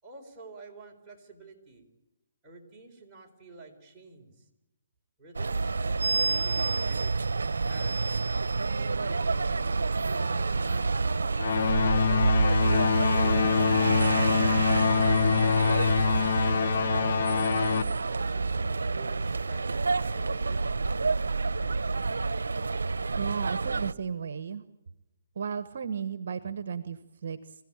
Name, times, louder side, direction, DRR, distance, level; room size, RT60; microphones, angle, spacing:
voice 1, 0.0-1.9 2.4-4.5 5.2-8.2 8.8-12.2 16.5-21.0, right 3 dB, 15° right, -2 dB, 4.3 m, -51 dB
sound 1, 5.3-23.9, right 3 dB, 90° right, 0.7 m, -28 dB
sound 2, 11.4-17.8, left 7 dB, 55° left, 0.7 m, -25 dB
voice 2, 23.2-24.6 25.4-27.5, right 7 dB, 60° right, 13 dB, 1.1 m, -34 dB
27.0 x 16.0 x 8.8 m, 0.98 s
hypercardioid pair, 155°, 0 cm